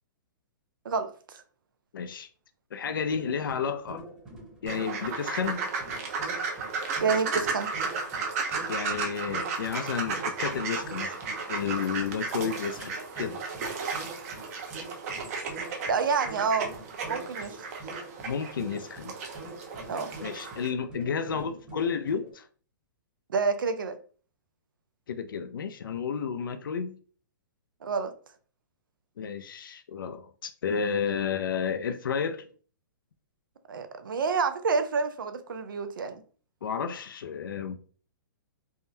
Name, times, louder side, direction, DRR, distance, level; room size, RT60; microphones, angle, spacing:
voice 1, 0.8-1.4 7.0-7.7 15.9-16.7 17.1-17.7 19.9-20.1 23.3-24.0 27.8-28.1 33.7-36.2, right 5 dB, 85° right, 0.5 m, -28 dB
voice 2, 1.9-2.3 2.7-4.0 4.6-5.7 8.7-11.2 11.5-13.4 18.3-19.1 20.2-22.5 25.1-27.0 29.2-32.5 36.6-37.8, left 6 dB, 85° left, 0.4 m, -31 dB
sound 1, 2.8-22.3, right 2 dB, 10° right, 0.9 m, -45 dB
sound 2, 4.7-20.7, right 4 dB, 45° right, 0.7 m, -34 dB
3.5 x 2.2 x 2.6 m
hypercardioid pair, 150°, 11 cm